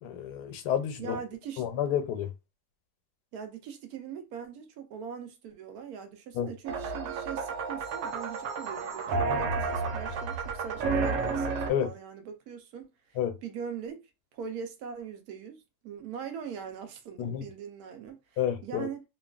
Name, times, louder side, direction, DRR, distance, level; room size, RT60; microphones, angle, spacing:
voice 1, 0.0-1.1 1.6-2.3 6.3-6.5 9.3-9.4 11.7-11.9 13.2-13.4 17.2-17.5 18.4-18.9, left 9 dB, 80° left, 1.2 m, -30 dB
voice 2, 1.0-1.6 3.3-14.0 14.3-15.6 15.8-19.0, right 7 dB, 70° right, 1.2 m, -41 dB
sound 1, 6.7-11.7, right 4 dB, 90° right, 1.2 m, -31 dB
2.9 x 2.3 x 2.3 m
omnidirectional pair, 1.7 m